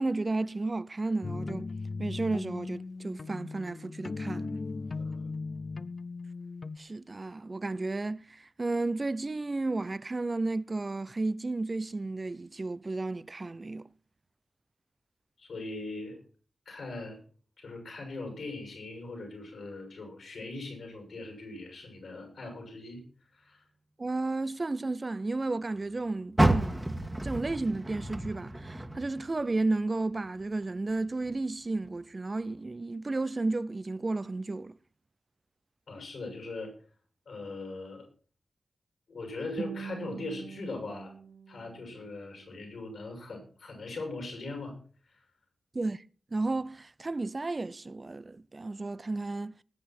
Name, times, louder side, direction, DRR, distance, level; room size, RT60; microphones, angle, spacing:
voice 1, 0.0-1.7 2.0-4.6 6.8-13.9 24.0-34.7 45.7-46.0 46.3-49.5, right 2 dB, 40° right, 0.6 m, -33 dB
sound 1, 1.2-6.8, left 3 dB, 55° left, 0.5 m, -37 dB
voice 2, 5.0-5.3 15.4-16.2 16.6-17.2 17.6-23.0 23.3-23.7 35.9-36.7 37.2-38.1 39.1-41.1 41.5-44.7 45.1-45.2, left 2 dB, 90° left, 6.7 m, -40 dB
Car, 26.3-29.6 30.0-31.4 31.8-31.9 32.5-32.6, right 1 dB, 15° right, 1.7 m, -30 dB
Guitar, 39.6-42.6, right 6 dB, 85° right, 0.7 m, -43 dB
20.0 x 8.3 x 4.4 m
cardioid pair, 60°, 0 cm